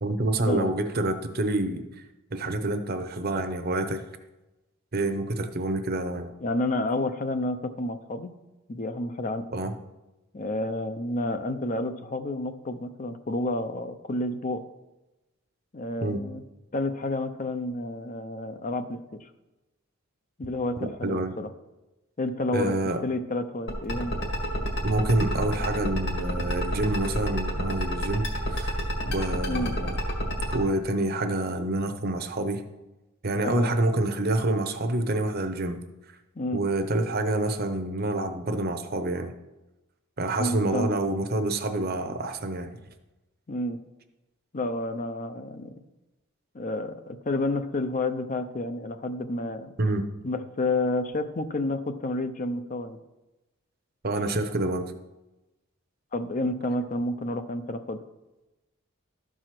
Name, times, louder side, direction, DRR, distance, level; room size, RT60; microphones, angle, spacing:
voice 1, 0.0-2.0 2.3-4.0 4.9-6.3 9.5-9.7 16.0-16.2 20.8-21.3 22.5-23.0 24.8-28.8 29.0-29.9 30.5-32.6 33.2-35.8 36.5-39.3 40.2-42.8 49.8-50.1 54.0-54.9, right 2 dB, 45° right, 8 dB, 0.8 m, -27 dB
voice 2, 6.4-8.3 8.7-9.5 10.3-14.6 15.7-16.4 16.7-19.3 20.4-21.5 22.2-22.7 23.0-24.2 29.5-29.7 33.4-33.7 36.4-36.6 40.4-40.9 43.5-43.8 44.5-45.7 46.5-49.7 50.2-53.0 56.1-58.0, left 2 dB, 35° left, 10 dB, 0.6 m, -30 dB
sound 1, 23.7-30.6, equal, 55° left, 2.1 m, -28 dB
13.0 x 4.8 x 5.9 m, 1.0 s
head